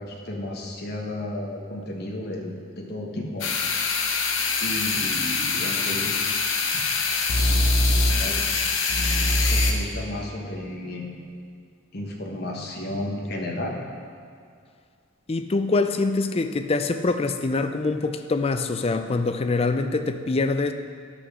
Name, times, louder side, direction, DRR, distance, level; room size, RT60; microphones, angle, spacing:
voice 1, 0.0-3.5 4.6-6.1 6.7-6.8 7.5-8.4 9.4-11.2 11.9-13.7, left 1 dB, 50° left, 0 dB, 1.4 m, -33 dB
sound 1, 3.4-9.7, left 3 dB, 70° left, 1.0 m, -23 dB
voice 2, 15.3-20.7, left 3 dB, 30° left, 8 dB, 0.4 m, -24 dB
9.8 x 6.0 x 6.3 m, 2.3 s
head